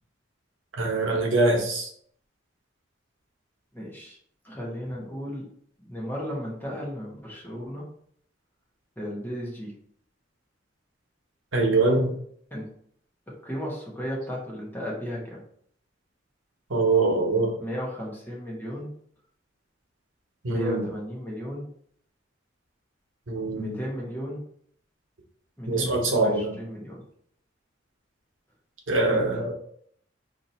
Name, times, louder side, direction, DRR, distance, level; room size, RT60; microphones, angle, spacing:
voice 1, 0.8-1.9 11.5-12.1 16.7-17.5 20.4-20.9 23.3-23.8 25.7-26.5 28.9-29.5, right 2 dB, 80° right, 0 dB, 0.9 m, -23 dB
voice 2, 3.7-4.2 4.4-5.4 5.8-7.9 9.0-9.7 12.5-12.7 13.4-15.4 17.6-18.9 20.5-21.7 23.5-24.4 25.6-27.0 29.0-29.5, equal, 10° left, -4 dB, 1.0 m, -34 dB
2.8 x 2.7 x 4.2 m, 0.64 s
head